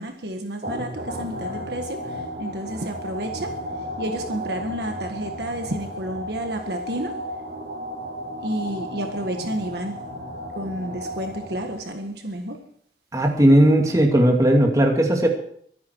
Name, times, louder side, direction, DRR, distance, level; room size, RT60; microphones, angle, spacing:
voice 1, 0.0-3.6 4.0-7.2 8.4-10.0 10.5-12.6, right 1 dB, 60° right, 4 dB, 1.6 m, -31 dB
sound 1, 0.6-12.0, equal, 45° right, 5.2 m, -34 dB
voice 2, 13.1-15.3, right 1 dB, 20° right, 1 dB, 2.5 m, -17 dB
23.5 x 9.6 x 4.7 m, 0.63 s
head